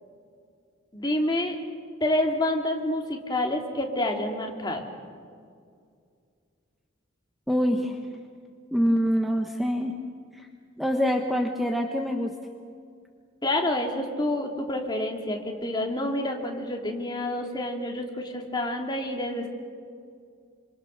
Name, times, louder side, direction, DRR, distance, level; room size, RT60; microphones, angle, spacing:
voice 1, 0.9-1.5 2.0-4.8 13.4-19.5, left 1 dB, 20° left, 1 dB, 2.9 m, -28 dB
voice 2, 7.5-8.0 8.7-9.9 10.3-10.5 10.8-12.3, equal, ahead, 2 dB, 1.2 m, -25 dB
27.0 x 27.0 x 6.6 m, 2.2 s
head